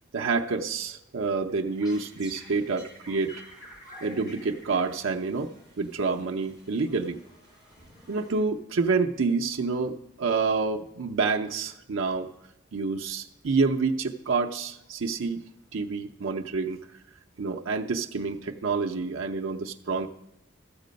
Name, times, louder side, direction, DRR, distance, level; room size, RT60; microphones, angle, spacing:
voice 1, 0.1-3.3 4.0-5.5 5.8-7.2 8.1-12.3 12.7-15.4 15.7-16.8 17.4-20.1, right 4 dB, 85° right, 2 dB, 0.6 m, -28 dB
sound 1, 1.5-8.8, equal, 20° left, 4.7 m, -50 dB
13.5 x 7.5 x 5.2 m, 0.86 s
head